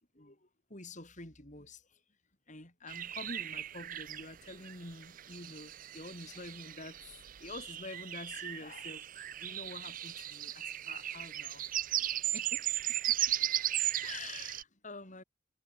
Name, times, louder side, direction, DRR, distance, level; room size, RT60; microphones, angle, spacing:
voice 1, 0.7-2.0 2.5-11.6 12.3-12.7 13.1-13.7 14.0-15.2, left 2 dB, 40° left, 5.5 m, -47 dB
sound 1, 2.9-14.6, right 13 dB, 45° right, 0.6 m, -36 dB
head